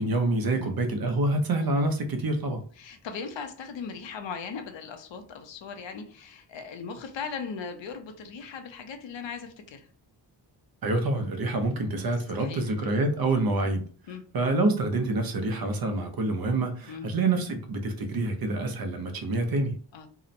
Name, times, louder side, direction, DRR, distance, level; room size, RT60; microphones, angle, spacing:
voice 1, 0.0-2.6 10.8-13.8 14.3-19.8, right 2 dB, 55° right, 0.5 m, -27 dB
voice 2, 2.8-9.9 12.3-12.7 14.1-14.2 16.9-17.1 19.9-20.1, left 5 dB, 80° left, 0.6 m, -38 dB
2.8 x 2.0 x 2.5 m
wide cardioid pair, 175°, 43 cm